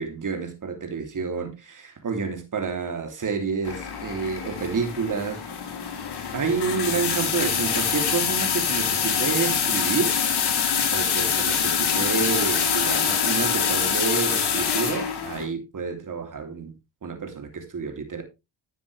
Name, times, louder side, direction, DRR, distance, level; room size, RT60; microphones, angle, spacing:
voice 1, 0.0-5.4 6.3-10.2 10.6-16.7 17.0-18.2, right 5 dB, 40° right, 3.2 m, -29 dB
sound 1, 3.6-15.5, left 7 dB, 55° left, 3.0 m, -25 dB
11.0 x 7.2 x 3.4 m
supercardioid pair, 70°, 46 cm